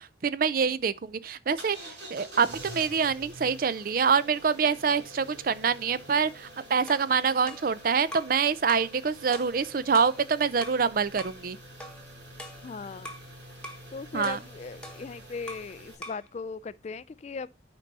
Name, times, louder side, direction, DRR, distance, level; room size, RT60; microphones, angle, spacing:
voice 1, 0.0-1.8 2.1-11.6 14.1-14.4, right 6 dB, 50° right, 0.4 m, -26 dB
sound 1, 1.6-15.9, right 1 dB, 75° right, 5.2 m, -47 dB
sound 2, 6.9-8.4 8.7-9.0 9.3-10.8 11.2-11.4 11.8-13.3 13.6-13.9 14.2-15.8 16.0-16.3, equal, 5° left, 1.2 m, -44 dB
voice 2, 12.6-13.1 13.9-17.5, left 4 dB, 35° left, 0.3 m, -38 dB
8.8 x 5.3 x 4.0 m
head